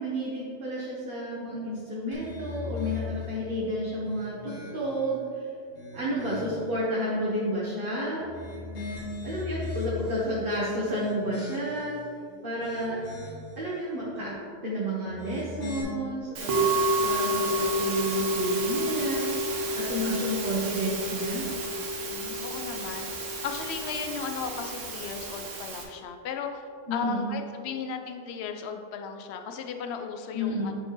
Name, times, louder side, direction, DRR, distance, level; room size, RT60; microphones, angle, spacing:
voice 1, 0.0-5.4 5.9-8.2 9.2-12.0 12.4-13.0 13.6-14.3 14.6-19.3 19.7-21.5 26.9-27.4 30.3-30.8, equal, 45° right, -7 dB, 1.2 m, -31 dB
sound 1, 2.1-3.4 4.0-5.1 5.6-6.7 8.2-10.3 10.8-12.0 12.4-13.6 15.0-15.8, left 4 dB, 90° left, 1.9 m, -39 dB
Musical instrument, 16.4-25.8, right 1 dB, 75° right, 1.3 m, -29 dB
voice 2, 22.1-30.7, left 5 dB, 65° left, 5 dB, 0.8 m, -36 dB
10.0 x 4.3 x 3.1 m, 2.4 s
omnidirectional pair, 1.3 m